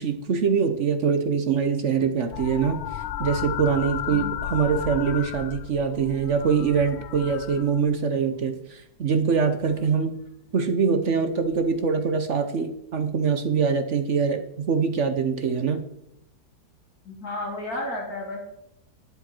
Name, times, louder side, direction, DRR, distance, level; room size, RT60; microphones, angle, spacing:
voice 1, 0.0-10.2 10.5-15.8, right 6 dB, 55° right, 7 dB, 1.1 m, -24 dB
sound 1, 2.3-8.1 9.3-9.8 11.6-11.7, left 11 dB, 85° left, 0.5 m, -34 dB
voice 2, 4.1-4.4 17.1-18.5, left 2 dB, 65° left, -2 dB, 3.3 m, -33 dB
12.0 x 10.0 x 4.5 m, 0.79 s
omnidirectional pair, 1.7 m